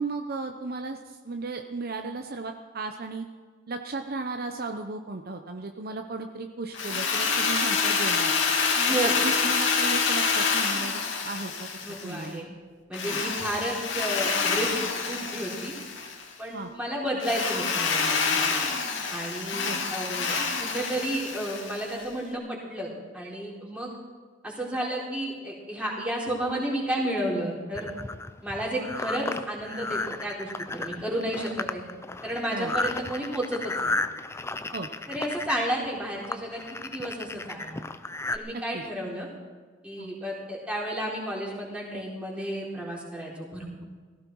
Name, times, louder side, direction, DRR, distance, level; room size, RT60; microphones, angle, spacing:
voice 1, 0.0-3.3 3.7-8.3 9.0-11.7 12.0-12.4 13.0-13.2 16.5-16.7 19.6-19.8 32.5-32.7 34.7-34.9 38.5-38.8 40.0-40.1, right 3 dB, 50° right, 5 dB, 0.8 m, -35 dB
Drill, 6.7-12.3 12.9-16.2 17.2-22.0, left 5 dB, 75° left, 2.4 m, -27 dB
voice 2, 8.7-9.1 11.8-12.5 12.9-15.7 16.4-18.6 19.1-23.9 24.4-27.9 28.4-31.8 32.2-33.9 35.1-37.8 38.3-39.3 39.8-43.7, right 1 dB, 5° right, -4 dB, 4.0 m, -32 dB
sound 1, 27.8-38.4, left 2 dB, 15° left, 0.5 m, -34 dB
17.5 x 15.5 x 4.7 m, 1.5 s
head